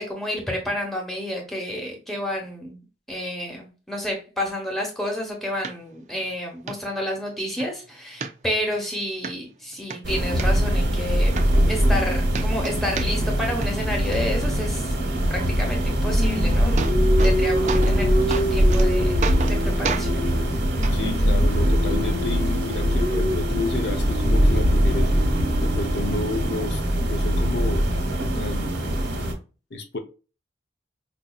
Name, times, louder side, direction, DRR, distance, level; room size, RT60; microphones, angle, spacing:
voice 1, 0.0-2.8 3.1-19.2 19.5-20.3, equal, ahead, 1.1 m, -30 dB
sound 1, 5.6-5.7 6.2-6.3 6.7-6.8 7.2-7.7 8.2-8.8 9.2-9.3 9.7-10.5 11.0-11.1 11.4-12.0 12.3-13.4 13.6-14.2 16.2-16.3 16.5-17.4 17.7-18.0 18.3-18.9 19.2-19.6 19.8-20.1 20.8-20.9 21.8-21.9, right 5 dB, 40° right, 0.4 m, -30 dB
sound 2, 10.0-29.3, equal, 80° right, 1.1 m, -22 dB
Singing, 16.2-20.5 20.8-26.8, left 1 dB, 45° left, 0.9 m, -29 dB
voice 2, 20.9-25.1 25.6-27.9 28.3-28.9 29.7-30.0, left 3 dB, 75° left, 0.6 m, -31 dB
5.1 x 2.7 x 2.3 m
head